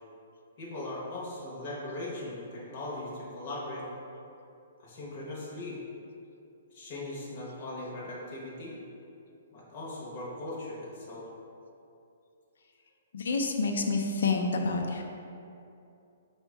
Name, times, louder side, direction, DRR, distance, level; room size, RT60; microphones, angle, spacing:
voice 1, 0.6-3.8 4.8-5.8 6.7-8.8 9.5-11.2, left 1 dB, 30° left, -6 dB, 0.7 m, -39 dB
voice 2, 13.1-15.0, left 3 dB, 75° left, 3 dB, 0.5 m, -28 dB
4.3 x 2.1 x 4.6 m, 2.7 s
hypercardioid pair, 175°, 0 cm